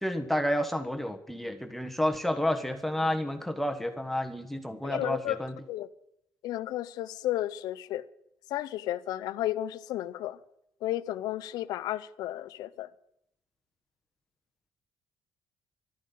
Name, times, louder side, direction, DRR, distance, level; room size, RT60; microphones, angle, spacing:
voice 1, 0.0-5.5, left 1 dB, 5° left, 5 dB, 1.4 m, -30 dB
voice 2, 4.8-5.4 5.7-5.9 6.4-8.0 8.5-10.4 10.8-12.9, left 14 dB, 90° left, 16 dB, 0.7 m, -33 dB
13.0 x 9.4 x 9.4 m, 0.77 s
cardioid pair, 120°, 7 cm